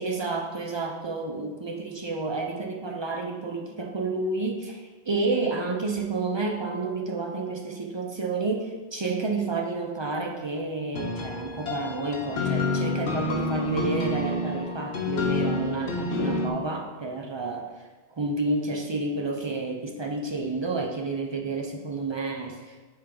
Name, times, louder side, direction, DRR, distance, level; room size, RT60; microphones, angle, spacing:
voice 1, 0.0-17.9 18.2-22.8, right 3 dB, 45° right, 1 dB, 0.3 m, -30 dB
sound 1, 10.9-16.5, left 2 dB, 70° left, 1.0 m, -28 dB
5.6 x 3.5 x 5.1 m, 1.3 s
omnidirectional pair, 1.2 m